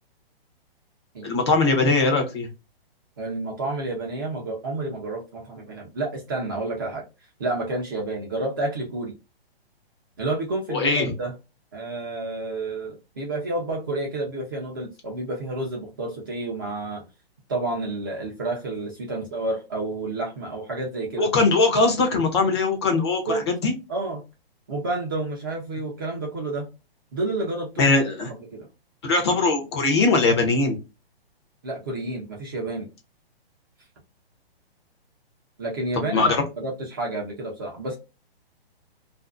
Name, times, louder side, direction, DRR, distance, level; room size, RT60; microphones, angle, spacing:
voice 1, 1.2-2.5 10.7-11.1 21.2-23.7 27.8-28.3 29.0-30.8 36.0-36.4, left 3 dB, 30° left, 3 dB, 0.5 m, -21 dB
voice 2, 3.2-7.0 7.4-9.1 10.2-11.3 11.7-17.1 17.5-21.3 23.3-23.4 23.9-24.2 24.7-26.7 27.1-27.9 28.5-28.7 31.6-32.9 35.6-38.0, right 2 dB, 20° right, -1 dB, 0.4 m, -30 dB
2.5 x 2.4 x 2.3 m, 0.26 s
hypercardioid pair, 160°, 31 cm